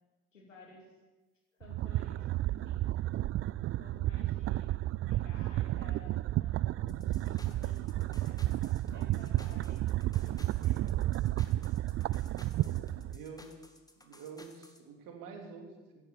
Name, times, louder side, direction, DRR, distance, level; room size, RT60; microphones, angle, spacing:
voice 1, 0.3-0.9 1.5-3.3 3.8-6.7 7.2-9.9 10.2-10.8, left 2 dB, 85° left, -1 dB, 2.8 m, -56 dB
sound 1, 1.6-13.2, right 15 dB, 40° right, 0.4 m, -32 dB
sound 2, 6.9-14.8, left 1 dB, 10° left, 2.1 m, -54 dB
voice 2, 10.6-11.1 13.1-13.5 14.0-16.0, right 5 dB, 60° right, 3 dB, 3.0 m, -48 dB
15.5 x 11.0 x 6.9 m, 1.2 s
figure-of-eight pair, 45°, 37 cm